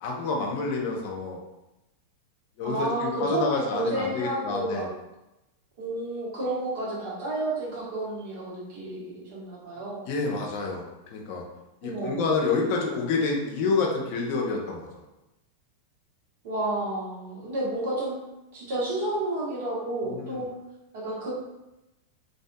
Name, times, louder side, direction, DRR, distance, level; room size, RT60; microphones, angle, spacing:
voice 1, 0.0-1.4 2.6-4.9 10.1-11.4 11.8-14.9 20.0-20.4, left 4 dB, 55° left, 0 dB, 0.7 m, -28 dB
voice 2, 2.6-4.9 5.8-10.0 11.8-12.2 16.4-18.2 18.5-20.5 20.9-21.3, right 1 dB, 60° right, -6 dB, 1.3 m, -31 dB
2.6 x 2.6 x 2.2 m, 0.96 s
hypercardioid pair, 105°, 0 cm